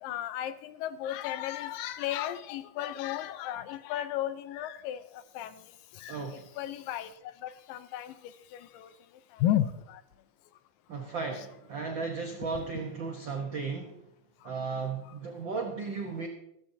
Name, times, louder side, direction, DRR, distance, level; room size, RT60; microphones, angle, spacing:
voice 1, 0.0-5.6 5.9-8.9 9.3-10.0 11.4-11.5 15.1-15.2, left 12 dB, 85° left, 12 dB, 2.4 m, -34 dB
voice 2, 6.1-6.5 10.9-14.0 14.4-16.3, right 4 dB, 90° right, 2 dB, 1.0 m, -35 dB
15.0 x 14.5 x 2.8 m, 0.80 s
omnidirectional pair, 3.9 m